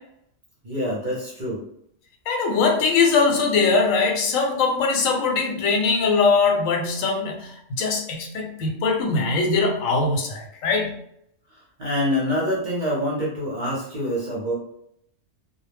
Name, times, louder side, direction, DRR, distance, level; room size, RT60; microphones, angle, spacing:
voice 1, 0.6-1.7 11.5-14.5, equal, 50° right, -4 dB, 0.6 m, -26 dB
voice 2, 2.3-11.0, left 4 dB, 85° left, 2 dB, 1.0 m, -21 dB
2.2 x 2.0 x 3.2 m, 0.72 s
omnidirectional pair, 1.4 m